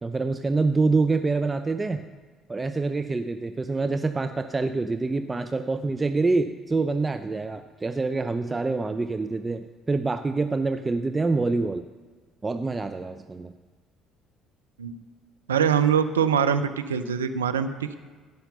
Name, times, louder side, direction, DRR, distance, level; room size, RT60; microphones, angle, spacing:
voice 1, 0.0-2.0 2.5-11.8 12.4-13.5, right 3 dB, 25° right, 8 dB, 0.6 m, -26 dB
voice 2, 15.5-18.0, right 7 dB, 90° right, 9 dB, 0.6 m, -23 dB
16.0 x 5.8 x 6.8 m, 1.4 s
hypercardioid pair, 55°, 0 cm